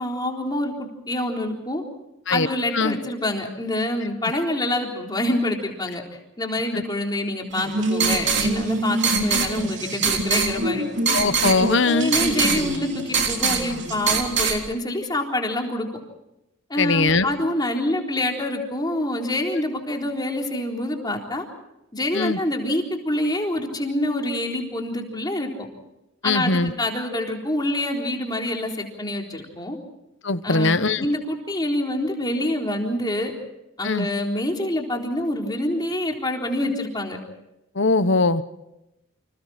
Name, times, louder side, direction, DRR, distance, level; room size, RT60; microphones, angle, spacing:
voice 1, 0.0-1.8 2.3-6.0 6.4-10.8 11.8-15.9 16.7-21.4 21.9-25.7 26.2-29.8 30.4-33.3 33.8-37.2, left 1 dB, 20° left, 1 dB, 3.9 m, -26 dB
sound 1, 7.5-14.6, right 4 dB, 60° right, 3.4 m, -23 dB
voice 2, 11.1-12.1 16.8-17.3 22.1-22.4 26.2-26.7 30.2-31.0 33.8-34.1 37.7-38.4, left 3 dB, 65° left, 12 dB, 1.1 m, -21 dB
29.5 x 26.5 x 4.4 m, 0.89 s
head